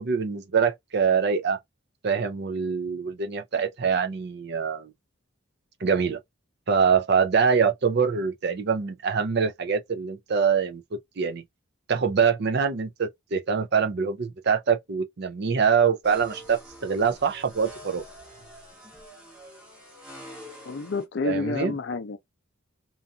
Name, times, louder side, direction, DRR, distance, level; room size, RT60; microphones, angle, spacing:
voice 1, 0.0-1.6 2.0-4.9 5.8-6.2 6.7-11.4 11.9-18.0 21.2-21.7, right 6 dB, 50° right, 0.5 m, -24 dB
sound 1, 16.0-21.0, equal, 5° right, 1.0 m, -46 dB
voice 2, 20.6-22.2, left 3 dB, 55° left, 0.5 m, -29 dB
2.6 x 2.3 x 2.6 m
head